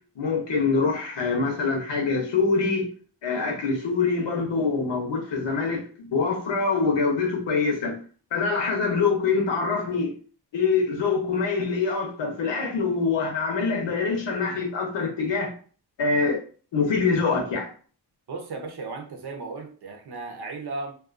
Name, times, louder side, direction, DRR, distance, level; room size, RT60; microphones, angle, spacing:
voice 1, 0.2-2.9 3.2-8.0 8.3-10.1 10.5-15.5 16.0-16.4 16.7-17.7, left 4 dB, 90° left, 0.8 m, -24 dB
voice 2, 18.3-20.9, right 3 dB, 65° right, 0.7 m, -35 dB
2.4 x 2.3 x 2.4 m
wide cardioid pair, 95°, 43 cm